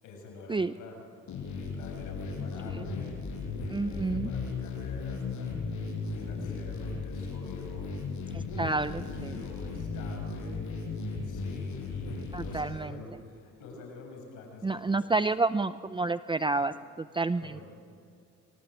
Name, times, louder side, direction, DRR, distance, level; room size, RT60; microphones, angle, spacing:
voice 1, 0.0-3.4 3.7-5.6 6.1-7.9 8.5-10.6 11.2-15.3 16.6-16.7 17.4-17.6, left 3 dB, 90° left, 1 dB, 7.3 m, -48 dB
sound 1, 1.3-12.6, left 4 dB, 70° left, 7.1 m, -36 dB
voice 2, 3.7-4.3 8.3-9.4 12.3-13.0 14.6-16.7 17.1-17.6, right 3 dB, 15° right, 12 dB, 0.5 m, -29 dB
26.0 x 24.0 x 8.5 m, 2.4 s
cardioid pair, 90°, 30 cm